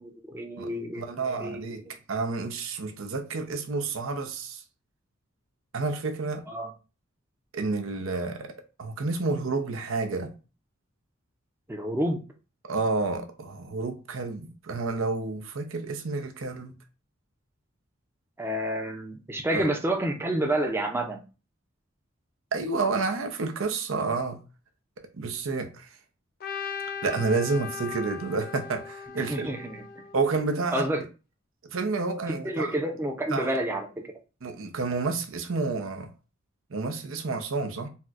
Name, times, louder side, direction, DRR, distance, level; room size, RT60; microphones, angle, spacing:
voice 1, 0.0-1.9 6.5-6.7 11.7-12.2 18.4-21.2 29.2-30.1 30.7-31.0 32.3-34.1, right 1 dB, 10° right, 0.4 m, -29 dB
voice 2, 1.0-1.8 2.1-4.6 5.7-6.4 7.5-8.5 8.8-10.3 12.7-16.8 19.5-19.6 22.5-24.4 25.1-25.9 27.0-29.5 30.1-30.9 31.7-32.7 33.3-33.6 34.4-36.1 36.7-37.9, right 3 dB, 90° right, 0.6 m, -29 dB
Trumpet, 26.4-30.6, left 6 dB, 50° left, 0.5 m, -38 dB
4.2 x 2.1 x 2.4 m
head